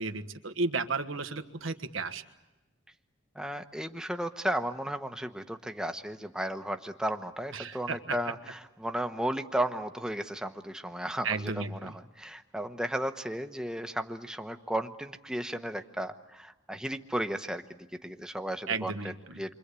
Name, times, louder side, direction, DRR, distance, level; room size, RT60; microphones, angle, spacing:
voice 1, 0.0-2.2 7.5-8.3 11.2-12.0 18.7-19.4, right 4 dB, 90° right, 9 dB, 1.5 m, -33 dB
voice 2, 3.3-18.9 19.4-19.5, right 1 dB, 5° right, 7 dB, 1.1 m, -34 dB
29.0 x 24.5 x 8.4 m, 1.1 s
head